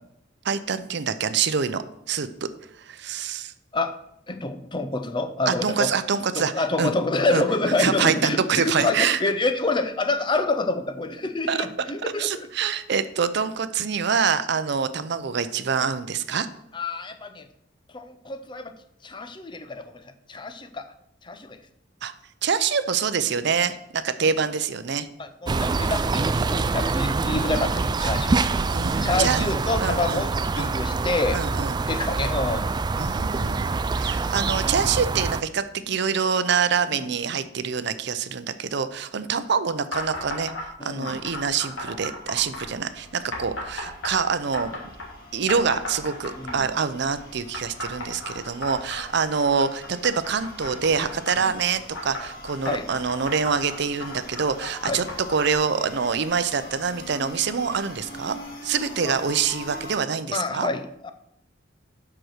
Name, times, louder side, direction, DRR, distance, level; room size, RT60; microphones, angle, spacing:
voice 1, 0.4-2.5 2.8-3.5 5.5-6.5 6.8-6.9 7.3-7.4 7.8-9.2 11.5-11.7 12.2-16.5 22.0-22.1 22.4-25.1 28.7-29.4 29.8-30.2 30.6-30.7 31.3-31.8 33.0-40.5 40.8-44.8 45.3-60.7, right 6 dB, 60° right, 12 dB, 0.6 m, -25 dB
voice 2, 4.3-5.9 6.4-12.5 16.7-17.4 17.9-18.7 19.0-20.0 20.3-20.9 21.2-21.6 25.2-28.6 29.0-31.4 31.8-32.7 36.9-37.0 40.8-41.2 46.4-46.6 52.7-52.8 54.9-55.0 59.0-59.2 60.3-61.1, left 2 dB, 25° left, 9 dB, 0.7 m, -27 dB
sound 1, 25.5-35.4, right 3 dB, 20° right, 0.3 m, -25 dB
sound 2, 39.9-40.7 41.0-42.7 43.3-45.1 45.5-46.8 47.5-51.4 51.9-55.5, left 1 dB, 80° left, 2.6 m, -35 dB
sound 3, 41.3-60.0, left 1 dB, 50° left, 1.9 m, -44 dB
7.8 x 6.0 x 6.5 m, 0.77 s
head